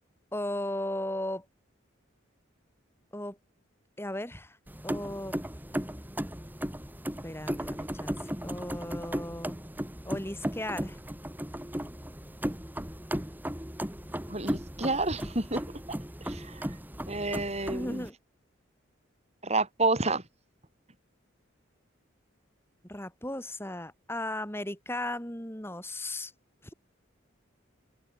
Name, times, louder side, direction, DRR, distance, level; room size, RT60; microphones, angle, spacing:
voice 1, 0.3-1.4 3.1-3.4 4.0-4.6 4.8-5.3 5.7-6.2 7.2-8.2 8.4-9.6 10.0-11.0 17.7-18.1 22.8-26.3, left 1 dB, 10° left, 7.5 m, -36 dB
sound 1, 4.7-18.1, equal, 10° right, 2.4 m, -36 dB
voice 2, 14.3-15.6 16.2-16.6 17.1-18.1 19.4-20.2, right 2 dB, 30° right, 6.3 m, -29 dB
head